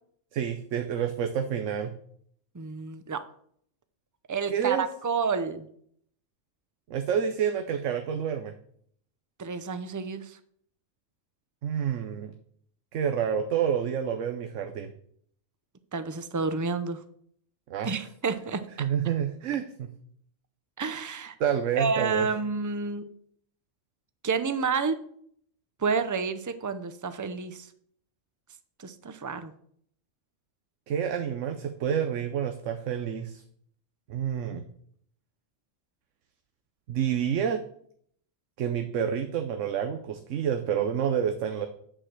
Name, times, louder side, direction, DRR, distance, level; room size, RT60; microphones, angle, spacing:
voice 1, 0.3-1.9 4.5-4.9 6.9-8.5 11.6-12.3 12.9-14.9 17.7-18.0 18.8-19.9 21.4-22.3 30.9-33.4 34.1-34.7 36.9-37.6 38.6-41.7, right 8 dB, 75° right, 7 dB, 1.1 m, -28 dB
voice 2, 2.5-3.2 4.3-5.7 9.4-10.4 15.9-17.0 17.8-18.9 20.8-21.3 21.8-23.0 24.2-25.0 25.8-27.7 28.8-29.5, right 5 dB, 30° right, 11 dB, 0.3 m, -30 dB
8.9 x 4.9 x 7.4 m, 0.65 s
omnidirectional pair, 1.3 m